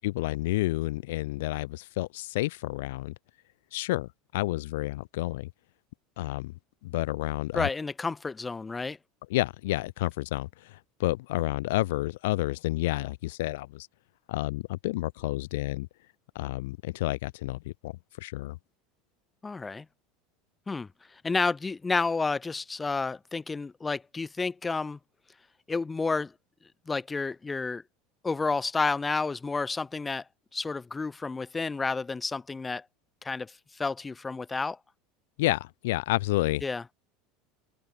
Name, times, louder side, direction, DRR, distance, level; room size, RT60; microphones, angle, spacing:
voice 1, 0.0-3.1 3.7-5.5 6.2-6.5 6.8-7.7 9.3-10.5 11.0-13.9 14.3-15.9 16.4-17.9 18.2-18.6 35.4-36.6, left 19 dB, 85° left, 0.5 m, -30 dB
voice 2, 7.5-9.0 19.4-19.8 20.7-20.9 21.2-25.0 25.7-26.3 26.9-27.8 28.2-30.2 30.5-32.8 33.2-34.8 36.6-36.8, left 4 dB, 10° left, 1.2 m, -30 dB
supercardioid pair, 150°, 0 cm